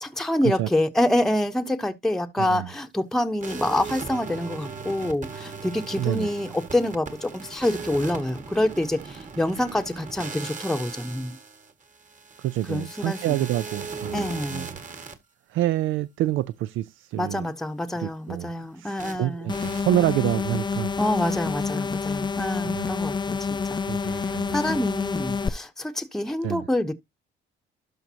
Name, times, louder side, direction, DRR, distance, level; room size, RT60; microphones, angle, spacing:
voice 1, 0.0-11.4 12.7-13.4 14.1-14.7 17.2-19.5 21.0-23.4 23.7-27.0, left 1 dB, ahead, 0.9 m, -27 dB
voice 2, 2.4-2.7 5.9-6.3 12.4-15.1 15.5-17.5 18.0-20.9 22.6-22.9 23.9-24.6 26.4-26.7, right 14 dB, 85° right, 0.4 m, -28 dB
sound 1, 3.4-15.1 19.0-19.2 19.5-19.8, right 5 dB, 40° right, 1.8 m, -38 dB
sound 2, 19.5-25.5, left 5 dB, 25° left, 0.4 m, -28 dB
12.0 x 5.1 x 2.8 m
cardioid pair, 90°, 20 cm